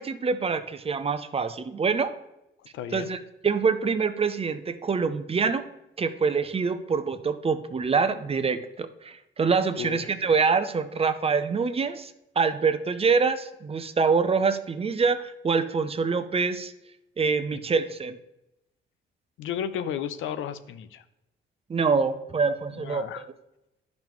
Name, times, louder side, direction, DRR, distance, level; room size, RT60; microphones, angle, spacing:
voice 1, 0.0-2.1 2.9-5.7 6.0-16.7 17.2-18.2 21.7-23.2, right 5 dB, 30° right, 11 dB, 0.6 m, -25 dB
voice 2, 2.7-3.1 9.8-10.1 17.5-17.6 19.4-21.0 22.7-23.3, left 8 dB, 80° left, 12 dB, 0.6 m, -33 dB
10.5 x 5.3 x 3.0 m, 0.90 s
cardioid pair, 90°, 20 cm